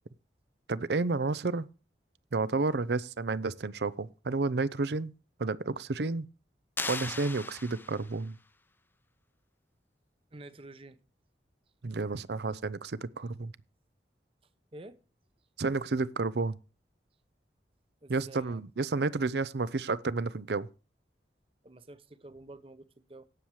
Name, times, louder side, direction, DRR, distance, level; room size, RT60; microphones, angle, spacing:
voice 1, 0.7-1.7 2.3-5.1 5.4-6.3 6.9-8.4 11.8-13.5 15.6-16.6 18.1-20.7, right 3 dB, 70° right, 0.6 m, -31 dB
sound 1, 6.8-8.3, left 3 dB, 10° left, 0.6 m, -37 dB
voice 2, 10.3-11.0 14.7-15.0 18.0-18.6 21.6-23.3, right 2 dB, 30° right, 0.8 m, -49 dB
17.5 x 7.2 x 3.1 m
head